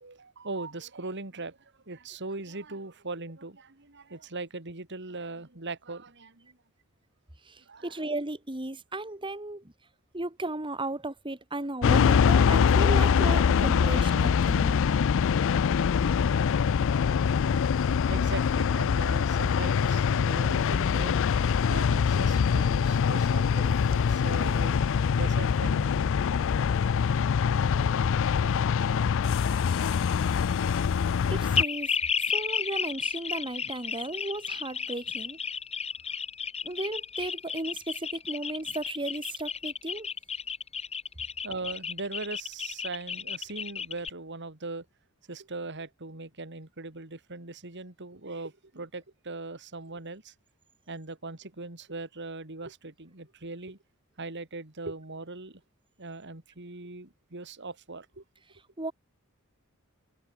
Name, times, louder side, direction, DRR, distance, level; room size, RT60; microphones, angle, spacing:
voice 1, 0.0-6.6 7.7-7.9 18.1-21.2 21.7-24.8 25.1-26.1 28.4-28.5 30.1-30.2 41.4-44.8 45.3-50.3 50.9-53.8 54.2-55.6 56.0-58.2, right 3 dB, 55° right, 2.7 m, -40 dB
voice 2, 7.4-9.7 10.1-14.7 31.3-35.4 36.6-40.1 58.8-58.9, right 2 dB, 25° right, 2.7 m, -35 dB
sound 1, 11.8-31.6, left 6 dB, 60° left, 0.4 m, -24 dB
sound 2, 31.5-44.1, left 6 dB, 30° left, 3.2 m, -32 dB
head